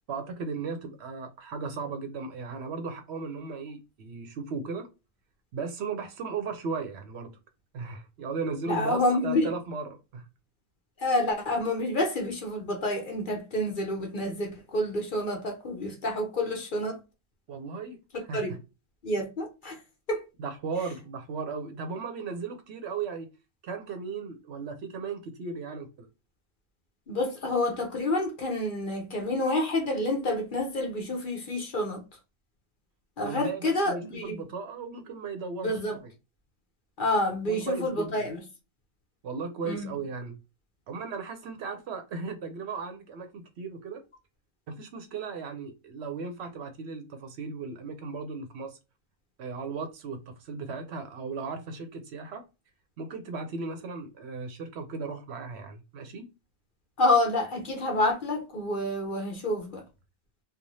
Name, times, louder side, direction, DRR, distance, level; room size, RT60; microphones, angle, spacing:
voice 1, 0.1-4.9 5.5-7.4 7.7-10.3 17.5-18.0 18.3-18.4 20.4-23.3 23.6-26.1 33.2-36.1 37.5-38.1 39.2-40.4 40.9-44.0 44.7-48.8 49.4-52.4 53.0-56.2, right 4 dB, 65° right, 0.8 m, -36 dB
voice 2, 8.7-9.5 11.0-17.0 18.1-18.5 19.0-19.8 20.1-20.3 27.1-32.0 33.2-34.4 35.6-36.0 37.0-38.4 39.6-39.9 57.0-59.8, left 1 dB, 50° left, 0.8 m, -28 dB
3.1 x 2.3 x 2.6 m
omnidirectional pair, 1.3 m